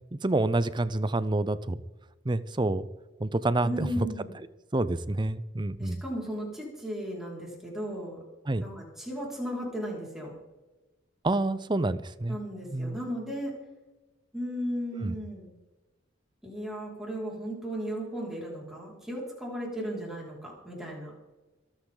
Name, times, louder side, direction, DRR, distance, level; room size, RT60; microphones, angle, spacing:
voice 1, 0.1-1.8 2.2-2.9 3.2-4.1 4.7-6.0 8.5-8.6 11.2-12.4 12.7-13.0 15.0-15.1, right 2 dB, 25° right, 15 dB, 0.6 m, -28 dB
voice 2, 3.6-4.3 5.8-8.2 8.6-10.3 12.3-13.5 14.3-15.5 16.4-21.1, equal, ahead, -4 dB, 5.2 m, -35 dB
26.5 x 8.9 x 3.9 m, 1.1 s
head